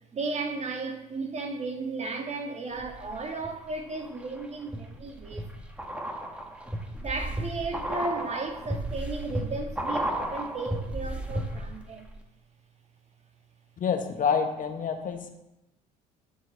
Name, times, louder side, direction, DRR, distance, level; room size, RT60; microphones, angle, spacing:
voice 1, 0.1-5.6 7.0-12.1, right 3 dB, 35° right, 3 dB, 2.0 m, -34 dB
sound 1, 2.8-3.5 4.0-11.8 12.1-12.2, right 1 dB, 5° right, 1.7 m, -34 dB
voice 2, 13.8-15.3, left 6 dB, 45° left, 5 dB, 1.4 m, -27 dB
12.5 x 6.6 x 4.0 m, 0.91 s
hypercardioid pair, 65°, 19 cm